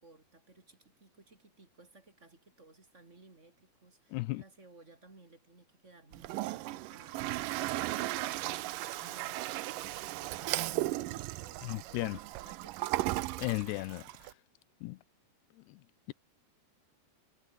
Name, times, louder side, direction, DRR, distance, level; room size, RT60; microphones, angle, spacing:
voice 1, 0.0-13.0, right 3 dB, 20° right, 3.2 m, -58 dB
voice 2, 4.1-4.4 11.6-12.2 13.4-14.1 14.8-15.0 15.7-15.8, left 21 dB, 90° left, 2.8 m, -35 dB
Toilet flush, 6.1-14.3, right 17 dB, 80° right, 2.0 m, -36 dB
omnidirectional pair, 4.7 m